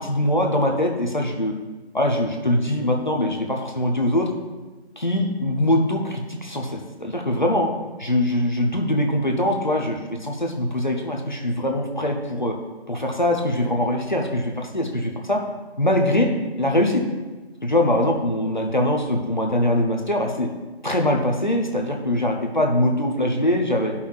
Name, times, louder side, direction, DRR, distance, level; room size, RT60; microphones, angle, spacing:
voice 1, 0.0-1.5 1.9-4.3 5.0-7.7 8.0-12.6 12.9-15.4 15.8-16.3 16.6-17.0 17.6-20.5 20.8-23.9, left 1 dB, 45° left, 2 dB, 0.8 m, -22 dB
11.5 x 5.6 x 2.4 m, 1.2 s
figure-of-eight pair, 180°, 32 cm